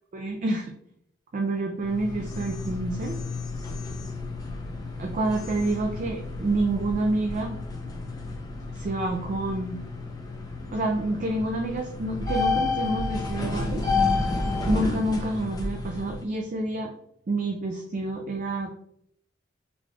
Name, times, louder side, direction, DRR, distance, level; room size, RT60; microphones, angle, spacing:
voice 1, 0.1-0.7 1.3-3.2 5.0-7.6 8.7-9.8 10.7-13.8 14.6-16.9 17.3-18.7, right 2 dB, 40° right, 2 dB, 0.4 m, -28 dB
sound 1, 1.8-16.2, left 3 dB, 20° left, 0.5 m, -31 dB
4.0 x 3.0 x 2.3 m, 0.72 s
head